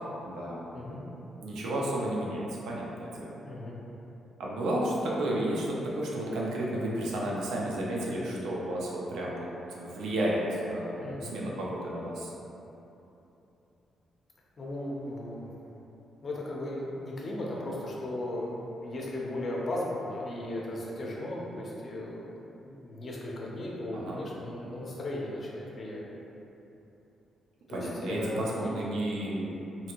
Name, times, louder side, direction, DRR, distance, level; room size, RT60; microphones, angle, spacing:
voice 1, 0.2-0.7 1.4-3.3 4.4-9.5 9.8-12.3 23.9-24.2 27.7-29.5, right 1 dB, 85° right, -4 dB, 0.5 m, -32 dB
voice 2, 3.4-3.8 5.0-5.2 11.0-11.4 14.6-15.5 16.2-22.3 22.6-26.0 27.7-28.7, left 1 dB, 35° left, -4 dB, 0.5 m, -36 dB
2.8 x 2.5 x 2.8 m, 2.9 s
cardioid pair, 140°, 0 cm